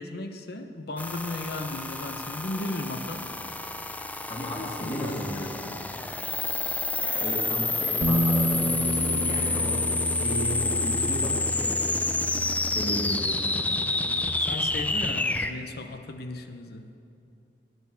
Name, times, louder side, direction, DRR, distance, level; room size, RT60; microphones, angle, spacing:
voice 1, 0.0-3.3 4.4-5.9 14.3-17.0, left 2 dB, 60° left, 7 dB, 0.9 m, -36 dB
sound 1, 1.0-15.5, left 2 dB, 10° left, 0.5 m, -29 dB
voice 2, 4.3-5.5 7.0-9.9 10.1-12.2 12.7-13.8, equal, 35° left, -2 dB, 2.7 m, -34 dB
Bass guitar, 8.0-14.3, equal, 75° right, 1.3 m, -31 dB
17.5 x 10.5 x 7.0 m, 2.7 s
head